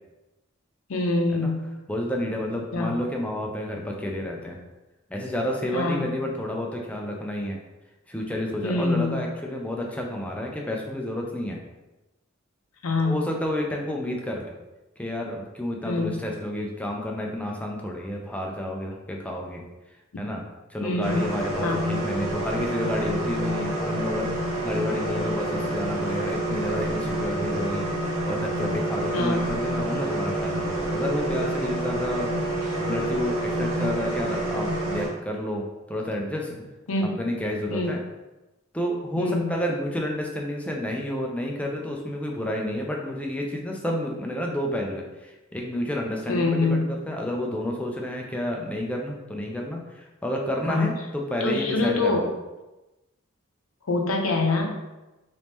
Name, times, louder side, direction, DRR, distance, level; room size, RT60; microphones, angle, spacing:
voice 1, 0.9-1.7 2.7-2.9 5.7-6.1 8.6-9.2 12.8-13.2 15.8-16.2 20.8-21.2 21.6-21.9 29.1-29.5 36.9-37.1 37.7-38.0 39.2-39.6 46.3-46.8 50.7-50.9 51.4-52.3 53.8-54.8, left 2 dB, 90° left, 2 dB, 0.6 m, -25 dB
voice 2, 1.9-4.6 5.1-7.6 8.1-11.6 13.0-14.5 15.0-19.6 20.2-20.4 20.7-36.6 37.0-38.0 38.7-52.3, left 1 dB, 5° left, 0 dB, 0.4 m, -30 dB
sound 1, 21.0-35.1, right 1 dB, 85° right, 1.0 m, -28 dB
3.0 x 2.7 x 3.4 m, 1.1 s
head